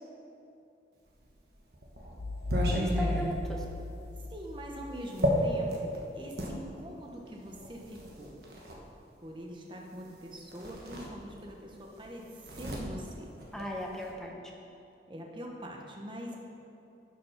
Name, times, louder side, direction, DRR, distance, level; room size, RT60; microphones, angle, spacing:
sound 1, 1.2-6.6 7.5-8.8 10.0-10.2 10.5-11.6 11.9-14.1, equal, 65° right, 1.4 m, -34 dB
sound 2, 2.2-4.9, left 2 dB, 80° left, 0.6 m, -35 dB
voice 1, 2.7-3.6 13.5-14.3, equal, 5° left, -1 dB, 0.9 m, -37 dB
voice 2, 4.3-8.4 9.2-13.3 15.1-16.3, equal, 25° right, 0 dB, 1.1 m, -43 dB
11.0 x 6.2 x 5.8 m, 2.7 s
head